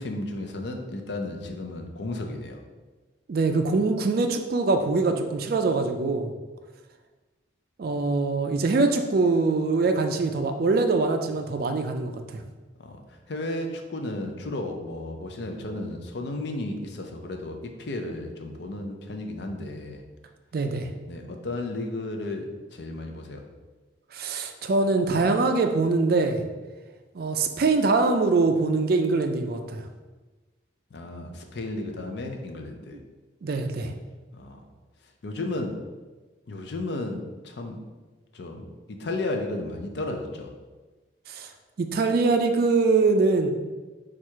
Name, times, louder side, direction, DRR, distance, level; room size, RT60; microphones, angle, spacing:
voice 1, 0.0-2.6 12.8-20.0 21.1-23.4 30.9-33.0 34.3-34.6 35.2-35.8 36.5-37.8 38.3-40.5, left 2 dB, 55° left, 3 dB, 0.5 m, -33 dB
voice 2, 3.3-6.3 7.8-12.4 20.5-20.9 24.1-26.4 27.1-29.9 33.4-33.9 41.3-41.5 41.8-43.5, right 3 dB, 50° right, 6 dB, 0.3 m, -23 dB
4.5 x 2.4 x 4.5 m, 1.3 s
head